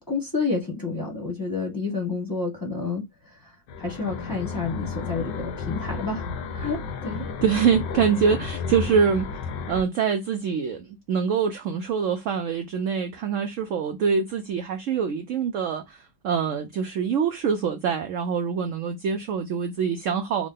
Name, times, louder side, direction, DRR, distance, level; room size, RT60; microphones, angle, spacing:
voice 1, 0.0-3.5 3.8-7.2, left 4 dB, 15° left, 0.8 m, -30 dB
sound 1, 3.7-9.8, left 5 dB, 80° left, 1.3 m, -32 dB
voice 2, 7.4-9.3 9.7-20.5, right 6 dB, 75° right, 0.7 m, -25 dB
3.6 x 2.1 x 3.6 m
omnidirectional pair, 1.8 m